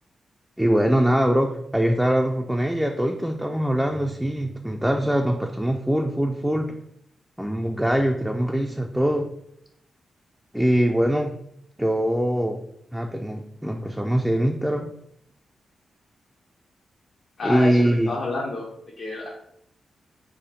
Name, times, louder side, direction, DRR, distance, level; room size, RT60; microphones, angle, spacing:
voice 1, 0.6-6.8 7.4-9.3 10.5-11.3 11.8-12.6 12.9-14.9 17.4-18.1, equal, 5° right, 3 dB, 0.3 m, -23 dB
voice 2, 17.4-18.7 19.0-19.3, left 2 dB, 70° left, -3 dB, 0.7 m, -29 dB
3.6 x 2.1 x 3.8 m, 0.76 s
supercardioid pair, 50°, 0 cm